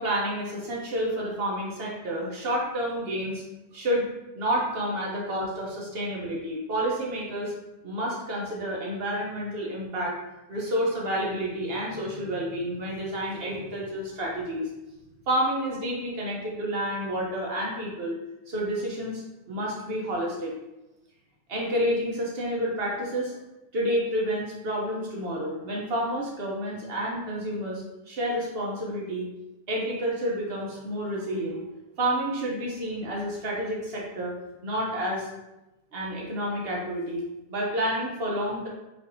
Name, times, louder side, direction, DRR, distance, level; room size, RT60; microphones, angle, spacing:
voice 1, 0.0-3.4 3.7-4.1 4.3-7.5 7.8-10.2 10.5-14.7 15.3-18.2 18.5-19.2 19.5-20.5 21.5-23.4 23.7-29.3 29.7-31.6 32.0-34.3 34.6-35.3 35.9-37.2 37.5-38.7, equal, 40° right, -3 dB, 1.0 m, -29 dB
4.6 x 3.3 x 2.8 m, 0.98 s
omnidirectional pair, 1.8 m